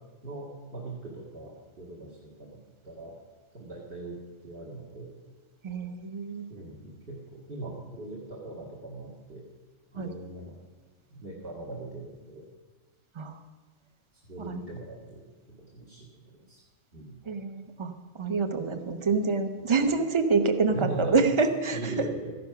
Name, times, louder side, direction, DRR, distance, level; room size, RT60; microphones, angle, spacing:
voice 1, 0.2-2.5 2.8-3.2 3.5-5.1 6.5-9.4 9.9-10.5 11.1-12.4 14.3-15.2 15.7-16.6 16.9-17.1 19.8-19.9 20.7-21.1 21.7-22.3, right 2 dB, 45° right, -3 dB, 2.2 m, -40 dB
voice 2, 5.6-6.5 9.9-10.1 13.1-13.4 14.5-14.6 17.3-22.1, right 4 dB, 25° right, 7 dB, 0.9 m, -27 dB
14.0 x 11.0 x 5.9 m, 1.4 s
omnidirectional pair, 1.4 m